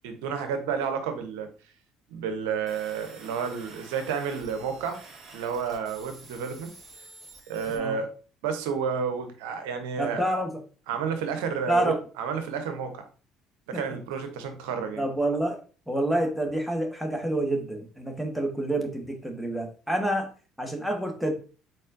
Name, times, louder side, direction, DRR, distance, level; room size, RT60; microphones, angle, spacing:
voice 1, 0.0-1.5 2.1-5.0 5.3-6.7 7.5-8.2 8.4-10.2 10.9-13.0 13.7-15.0, right 6 dB, 80° right, 7 dB, 0.8 m, -31 dB
sound 1, 2.7-7.8, right 3 dB, 45° right, 1.8 m, -49 dB
voice 2, 10.0-10.6 11.7-12.0 13.7-13.8 15.0-15.6 15.9-20.3 20.6-21.3, right 1 dB, ahead, 3 dB, 1.3 m, -28 dB
4.3 x 4.0 x 2.5 m, 0.37 s
hypercardioid pair, 65°, 0 cm